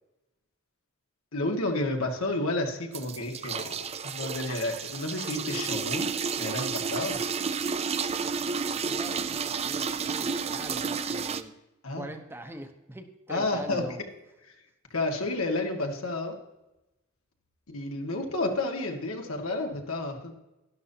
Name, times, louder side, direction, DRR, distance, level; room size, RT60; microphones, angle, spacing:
voice 1, 1.3-7.2 11.8-12.1 13.3-13.9 14.9-16.4 17.7-20.3, left 2 dB, 85° left, 2 dB, 1.9 m, -31 dB
sound 1, 2.9-11.4, right 5 dB, 30° right, 0.5 m, -31 dB
voice 2, 8.8-11.6 11.9-14.0, right 1 dB, 10° right, 5 dB, 0.9 m, -42 dB
12.5 x 11.5 x 2.8 m, 0.97 s
head